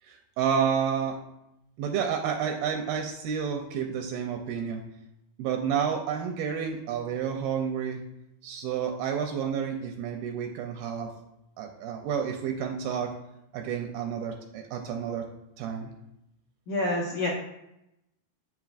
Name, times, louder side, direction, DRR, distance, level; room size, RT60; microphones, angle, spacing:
voice 1, 0.0-1.2 1.8-4.8 5.4-8.0 8.4-11.1 11.6-13.1 13.5-15.3 15.6-15.9, right 7 dB, 80° right, 3 dB, 2.3 m, -30 dB
voice 2, 16.7-17.3, left 2 dB, 80° left, -4 dB, 1.7 m, -27 dB
7.7 x 5.8 x 2.4 m, 0.86 s
omnidirectional pair, 4.6 m